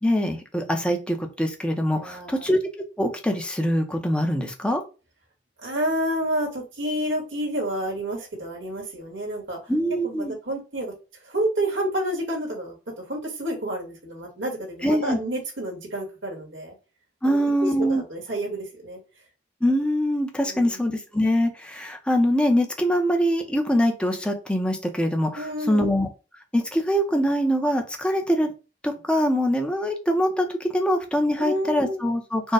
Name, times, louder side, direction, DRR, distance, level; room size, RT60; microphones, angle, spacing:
voice 1, 0.0-2.6 3.0-4.8 9.7-10.3 14.8-15.2 17.2-18.0 19.6-26.1 26.5-28.5 28.8-32.5, equal, 5° left, 3 dB, 0.8 m, -23 dB
voice 2, 2.0-2.5 5.6-9.7 10.0-10.9 11.2-16.7 17.2-19.0 20.4-20.8 25.4-25.9 31.4-32.0, right 1 dB, 75° right, -1 dB, 1.8 m, -29 dB
4.5 x 2.3 x 4.8 m, 0.31 s
head